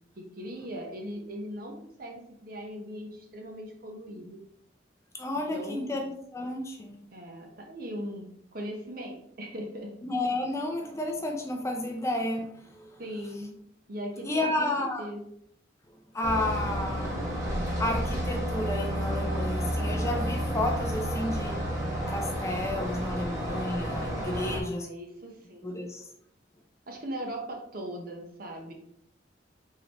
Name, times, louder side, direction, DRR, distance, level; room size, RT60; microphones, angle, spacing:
voice 1, 0.2-4.4 5.5-5.9 7.1-9.9 13.0-13.6 13.9-15.2 24.3-25.8 26.9-28.7, equal, 50° right, 1 dB, 0.9 m, -39 dB
voice 2, 5.1-7.0 10.0-13.0 14.2-15.1 16.1-17.2 17.8-21.7 22.1-24.9 25.6-26.1, left 1 dB, 15° left, 2 dB, 0.5 m, -32 dB
sound 1, 16.2-24.6, equal, 15° right, 1.1 m, -31 dB
4.6 x 3.8 x 3.0 m, 0.70 s
head